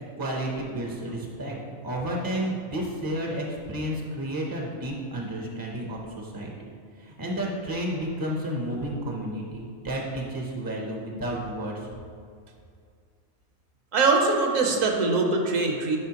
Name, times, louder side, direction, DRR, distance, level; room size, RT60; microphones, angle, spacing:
voice 1, 0.2-1.6 1.8-6.7 7.0-11.7, right 1 dB, 30° right, -1 dB, 0.4 m, -31 dB
voice 2, 13.9-16.0, right 3 dB, 70° right, 2 dB, 1.1 m, -22 dB
9.9 x 4.2 x 2.9 m, 2.2 s
omnidirectional pair, 1.4 m